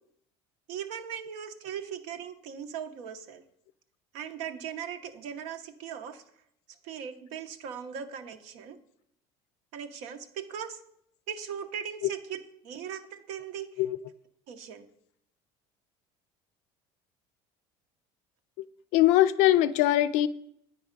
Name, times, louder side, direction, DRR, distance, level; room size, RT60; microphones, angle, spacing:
voice 1, 0.7-3.4 4.1-6.2 6.8-8.8 9.7-10.8 11.3-12.4 12.6-13.7 14.5-14.9, right 8 dB, 70° right, 7 dB, 0.8 m, -39 dB
voice 2, 18.9-20.3, left 14 dB, 70° left, 15 dB, 0.4 m, -21 dB
8.5 x 4.7 x 5.0 m, 0.72 s
cardioid pair, 125°, 12 cm